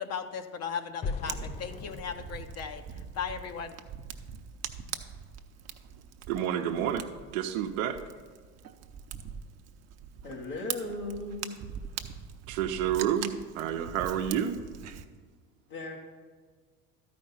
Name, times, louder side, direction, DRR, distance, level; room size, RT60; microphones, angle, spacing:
voice 1, 0.0-2.8 3.1-3.8, left 7 dB, 40° left, 7 dB, 0.7 m, -36 dB
sound 1, 1.0-4.0, left 4 dB, 20° left, 0.3 m, -40 dB
Fire, 1.3-15.0, right 8 dB, 40° right, 0.7 m, -42 dB
voice 2, 6.3-7.1 7.3-8.0 12.5-14.6, right 9 dB, 70° right, 5 dB, 0.8 m, -29 dB
voice 3, 10.2-11.7 15.7-16.0, left 2 dB, 80° left, -3 dB, 1.5 m, -37 dB
12.5 x 5.1 x 5.6 m, 1.5 s
hypercardioid pair, 75°, 41 cm